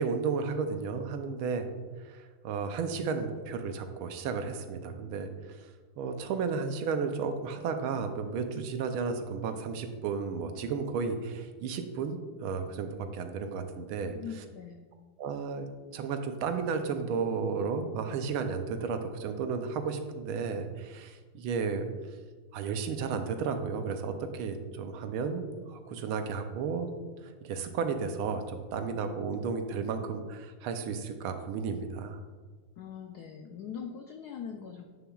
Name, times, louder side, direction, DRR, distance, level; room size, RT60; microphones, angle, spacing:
voice 1, 0.0-1.7 2.0-5.3 6.0-14.4 15.2-15.7 15.9-21.9 22.5-26.9 27.4-32.2, right 5 dB, 80° right, 7 dB, 1.5 m, -33 dB
voice 2, 14.1-14.8 32.8-34.8, left 7 dB, 85° left, 3 dB, 0.8 m, -41 dB
9.0 x 6.8 x 2.3 m, 1.4 s
omnidirectional pair, 2.4 m